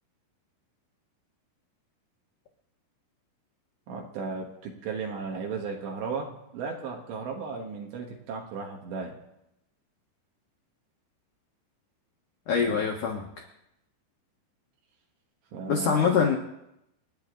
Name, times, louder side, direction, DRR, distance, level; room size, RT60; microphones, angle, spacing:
voice 1, 3.9-9.2 12.6-12.9 15.5-16.2, right 5 dB, 70° right, 0 dB, 3.5 m, -35 dB
voice 2, 12.5-13.3 15.7-16.3, left 6 dB, 85° left, 1 dB, 1.8 m, -24 dB
29.5 x 10.0 x 3.9 m, 0.84 s
omnidirectional pair, 5.7 m